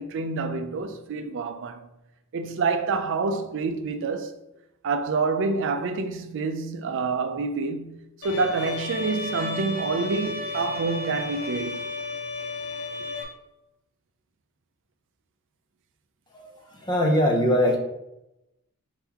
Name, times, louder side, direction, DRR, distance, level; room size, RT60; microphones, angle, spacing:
voice 1, 0.0-1.8 2.3-4.3 4.8-11.8, right 4 dB, 55° right, 0.5 m, -27 dB
Bowed string instrument, 8.2-13.2, left 3 dB, 75° left, 1.2 m, -33 dB
voice 2, 16.3-17.8, equal, 20° left, 0.6 m, -22 dB
4.5 x 3.9 x 2.9 m
head